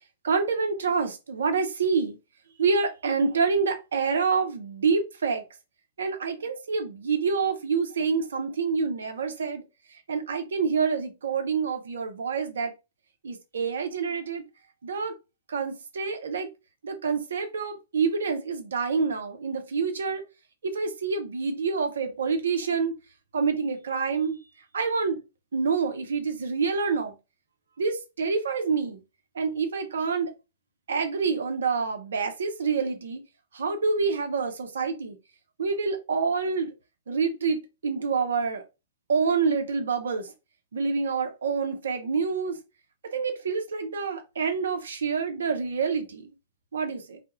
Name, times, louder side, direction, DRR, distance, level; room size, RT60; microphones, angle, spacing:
voice 1, 0.2-2.2 2.6-5.4 6.0-9.6 10.1-12.7 13.2-14.4 14.8-15.1 15.5-16.5 16.8-20.2 20.6-22.9 23.3-24.4 24.7-25.2 25.5-27.1 27.8-29.0 29.4-30.3 30.9-33.2 33.5-35.2 35.6-36.7 37.1-38.6 39.1-40.3 40.7-42.6 43.1-46.3 46.7-47.2, right 5 dB, 60° right, 0.5 m, -27 dB
2.2 x 2.0 x 2.8 m
figure-of-eight pair, 105°, 0 cm